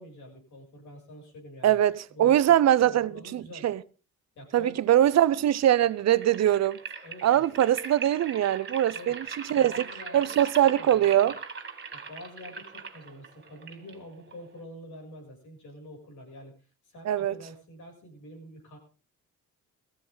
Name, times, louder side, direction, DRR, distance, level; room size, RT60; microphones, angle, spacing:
voice 1, 0.0-1.8 2.1-3.7 4.4-5.0 7.0-7.5 8.9-9.2 9.6-11.1 11.9-16.5 16.8-18.8, left 1 dB, 75° left, 7.7 m, -46 dB
voice 2, 1.6-3.8 4.5-6.8 7.2-9.2 9.5-9.7 10.1-11.4 17.1-17.3, right 11 dB, 60° right, 0.7 m, -22 dB
sound 1, 5.6-14.6, right 5 dB, 35° right, 2.7 m, -41 dB
17.5 x 15.0 x 4.0 m
cardioid pair, 90°, 30 cm